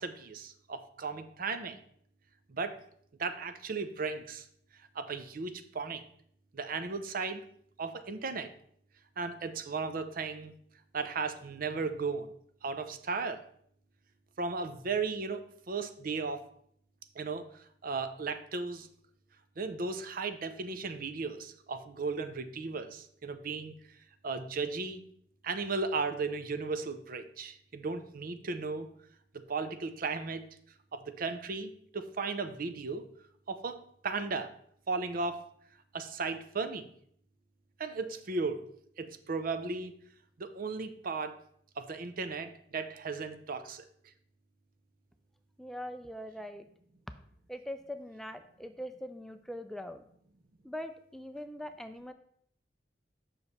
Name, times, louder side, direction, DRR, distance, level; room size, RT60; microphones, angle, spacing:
voice 1, 0.0-1.8 2.5-2.8 3.2-4.5 4.9-6.0 6.5-7.4 7.8-8.5 9.2-10.5 10.9-12.3 12.6-13.4 14.4-16.4 17.2-18.9 19.6-23.7 24.2-25.0 25.4-28.9 29.5-30.5 30.9-33.0 33.5-34.5 34.9-35.4 35.9-36.9 37.8-38.7 39.0-39.9 40.4-41.4 41.8-43.8, right 4 dB, 55° right, 10 dB, 0.6 m, -35 dB
voice 2, 45.6-46.6 47.5-50.0 50.6-52.1, equal, ahead, 8 dB, 0.3 m, -42 dB
6.9 x 5.7 x 4.1 m, 0.65 s
head